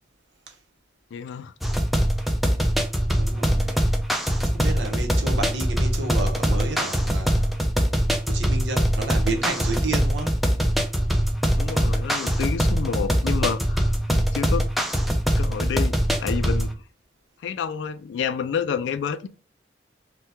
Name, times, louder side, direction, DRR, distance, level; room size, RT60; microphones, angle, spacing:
voice 1, 1.1-1.5 11.6-14.7 15.4-16.7 17.4-19.3, left 7 dB, 90° left, 0.3 m, -29 dB
sound 1, 1.6-16.7, equal, ahead, 0.3 m, -23 dB
voice 2, 3.1-3.8 4.4-7.6 8.2-10.5, right 3 dB, 85° right, 0.8 m, -31 dB
2.8 x 2.2 x 3.3 m
head